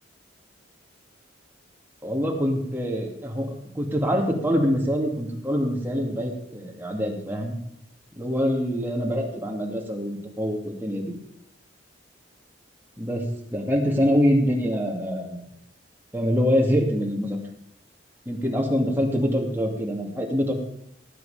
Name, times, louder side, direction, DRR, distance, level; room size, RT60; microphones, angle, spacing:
voice 1, 2.0-7.6 8.1-11.1 13.0-13.2 13.5-15.4 16.1-17.4 18.3-20.5, equal, 10° right, -1 dB, 2.6 m, -25 dB
19.0 x 8.4 x 5.1 m, 0.73 s
head